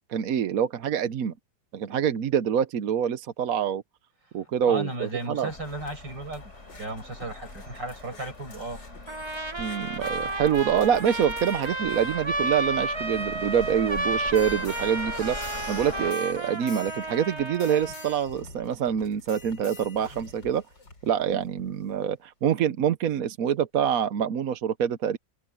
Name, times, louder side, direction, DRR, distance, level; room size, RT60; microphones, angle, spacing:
voice 1, 0.1-1.3 1.7-3.8 4.3-5.5 9.6-20.6 21.0-25.2, right 8 dB, 60° right, 1.2 m, -26 dB
sound 1, 4.4-22.0 22.6-22.7, left 3 dB, 85° left, 4.9 m, -49 dB
voice 2, 4.7-6.5 6.8-8.8, right 2 dB, 85° right, 8.2 m, -35 dB
sound 2, 5.5-16.1, left 3 dB, 40° left, 4.2 m, -42 dB
Trumpet, 9.1-18.2, right 2 dB, 20° right, 0.9 m, -32 dB
open air
omnidirectional pair, 1.9 m